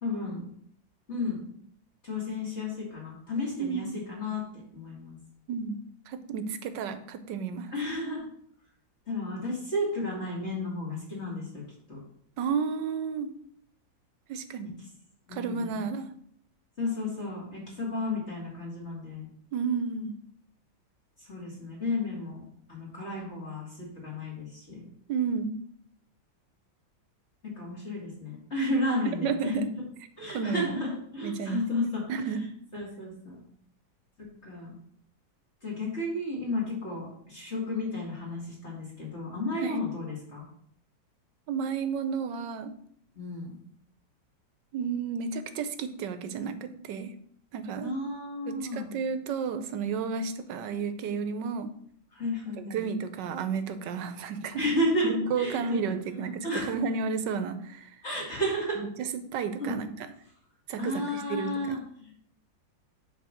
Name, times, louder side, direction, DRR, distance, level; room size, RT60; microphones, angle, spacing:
voice 1, 0.0-0.5 1.1-1.4 2.0-4.4 4.7-5.2 7.7-8.3 9.1-11.6 11.9-12.0 15.3-15.8 16.8-19.3 21.2-22.4 22.7-24.9 27.4-29.6 30.2-33.4 34.4-34.8 35.6-40.4 43.2-43.5 47.8-48.9 52.1-52.8 54.6-55.8 56.1-56.2 56.4-56.7 58.0-58.8 59.6-59.8 60.8-62.1, left 1 dB, 35° left, -4 dB, 2.5 m, -33 dB
voice 2, 3.6-3.9 5.5-5.8 6.1-7.7 12.4-13.3 14.3-14.7 15.3-16.0 19.5-20.2 25.1-25.5 29.2-29.7 30.3-30.7 31.2-31.6 32.1-32.5 39.6-39.9 41.5-42.7 44.7-47.1 47.5-47.9 48.5-51.7 52.6-54.6 55.0-57.9 58.8-59.1 59.3-60.1 60.7-61.8, right 5 dB, 70° right, 10 dB, 1.4 m, -32 dB
8.1 x 4.3 x 6.4 m, 0.65 s
omnidirectional pair, 2.1 m